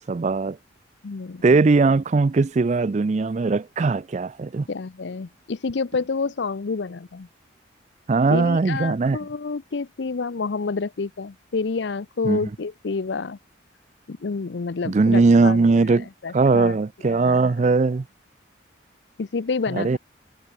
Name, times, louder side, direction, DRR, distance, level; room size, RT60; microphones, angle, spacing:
voice 1, 0.1-0.6 1.4-4.7 8.1-9.2 12.2-12.4 14.8-16.1 16.3-18.0 19.7-20.0, right 3 dB, 35° right, 0.4 m, -19 dB
voice 2, 1.0-1.5 4.7-7.3 8.3-13.4 14.1-15.9 16.2-16.8 17.0-17.7 19.2-20.0, left 4 dB, 70° left, 0.6 m, -29 dB
head